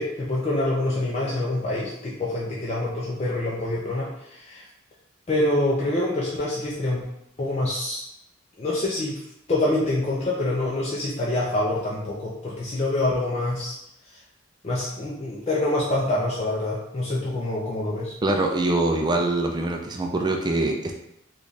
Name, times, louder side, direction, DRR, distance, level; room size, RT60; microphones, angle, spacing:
voice 1, 0.0-4.6 5.3-7.0 7.4-8.0 8.6-9.2 9.5-13.7 14.6-18.1, left 2 dB, 30° left, -6 dB, 0.5 m, -26 dB
voice 2, 18.2-20.9, right 2 dB, 20° right, 2 dB, 0.4 m, -24 dB
3.3 x 2.4 x 4.0 m, 0.79 s
head